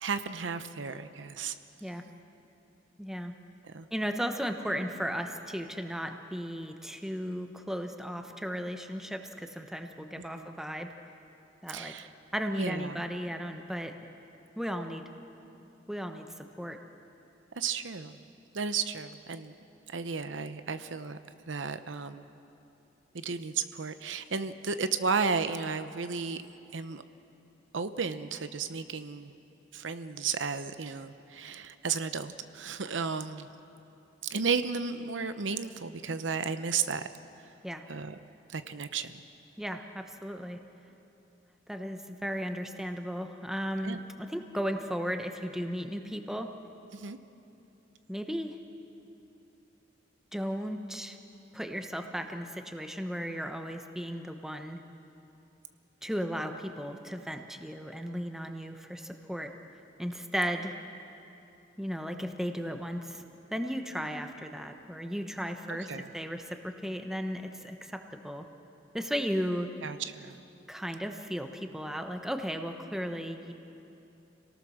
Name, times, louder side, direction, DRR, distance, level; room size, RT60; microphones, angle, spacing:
voice 1, 0.0-1.6 3.6-3.9 10.2-10.5 11.7-12.1 12.6-13.0 17.6-18.2 18.5-19.5 19.9-21.2 21.5-22.3 23.1-26.4 26.7-27.0 27.7-29.3 29.7-33.5 34.2-37.1 37.9-38.2 38.5-39.2 43.8-44.0 46.9-47.2 65.7-66.1 69.8-70.4, right 5 dB, 75° right, 11 dB, 0.8 m, -33 dB
voice 2, 3.0-3.3 3.9-10.9 11.6-11.9 12.3-14.0 14.6-15.0 15.9-16.8 37.6-37.8 39.6-40.6 41.7-46.5 48.1-48.6 50.3-51.2 51.5-54.8 56.0-59.5 60.0-60.8 61.8-63.2 63.5-68.5 68.9-69.7 70.7-73.5, equal, ahead, 5 dB, 1.1 m, -35 dB
28.0 x 18.5 x 6.4 m, 2.8 s
head